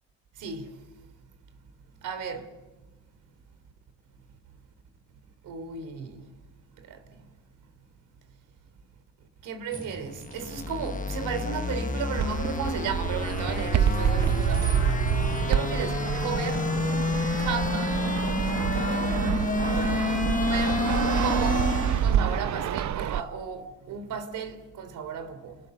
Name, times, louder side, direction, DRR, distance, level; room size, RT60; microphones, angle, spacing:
voice 1, 2.0-2.5 5.4-6.2 6.9-7.0 9.4-16.7 17.4-18.0 18.4-20.0 20.4-20.9 21.2-21.7 22.0-25.6, right 6 dB, 85° right, 3.7 m, -35 dB
sound 1, 9.7-15.4, right 2 dB, 45° right, 6.1 m, -46 dB
sound 2, 10.0-22.2, left 4 dB, 25° left, 1.2 m, -29 dB
Fixed-wing aircraft airplane, 12.2-23.2, right 9 dB, 65° right, 0.9 m, -27 dB
29.5 x 20.0 x 8.0 m
cardioid pair, 90°, 30 cm